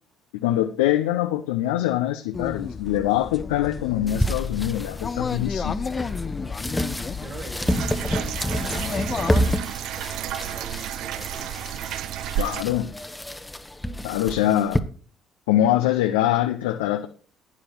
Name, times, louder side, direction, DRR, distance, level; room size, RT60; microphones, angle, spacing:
voice 1, 0.3-5.8 12.4-12.9 14.0-14.8 15.5-17.1, left 13 dB, 75° left, 6 dB, 0.7 m, -23 dB
sound 1, 2.3-9.6, left 5 dB, 35° left, 0.8 m, -32 dB
sound 2, 4.1-14.8, equal, 10° left, 1.2 m, -29 dB
voice 2, 7.1-9.4 10.0-11.6, right 3 dB, 45° right, 0 dB, 4.5 m, -44 dB
sound 3, 7.6-12.6, right 12 dB, 60° right, 0.5 m, -32 dB
11.0 x 9.8 x 4.6 m, 0.41 s
hypercardioid pair, 50°, 0 cm